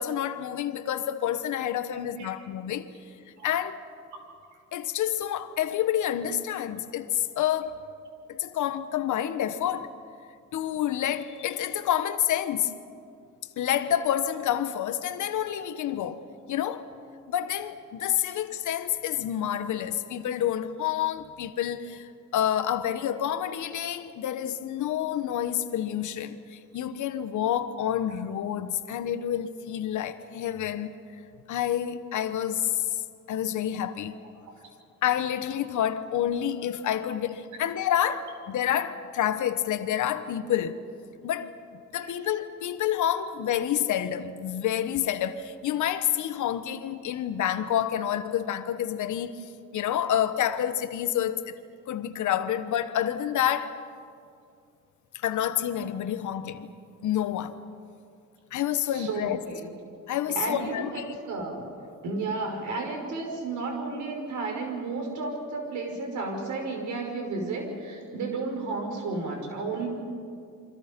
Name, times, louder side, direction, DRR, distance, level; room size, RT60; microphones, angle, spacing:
voice 1, 0.0-2.9 3.4-3.8 4.7-7.7 8.3-9.9 10.5-12.7 13.6-16.9 17.3-31.0 31.5-33.0 33.3-34.2 35.0-40.8 41.2-49.4 49.7-51.5 51.9-53.8 55.1-56.7 57.0-57.6 58.5-59.4 60.1-61.2, left 10 dB, 75° left, 1.3 m, -28 dB
voice 2, 58.9-59.7 60.3-61.7 62.0-69.9, right 3 dB, 75° right, 5.7 m, -32 dB
29.0 x 25.0 x 5.4 m
cardioid pair, 90°, 30 cm